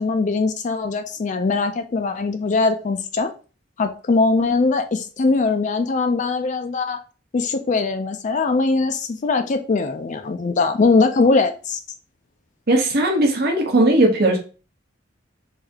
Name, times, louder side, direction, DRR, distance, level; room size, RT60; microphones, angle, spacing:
voice 1, 0.0-3.3 3.8-7.0 7.3-11.8, left 3 dB, 40° left, 0.4 m, -21 dB
voice 2, 12.7-14.4, right 1 dB, 55° right, 0.9 m, -17 dB
3.4 x 2.7 x 3.4 m
head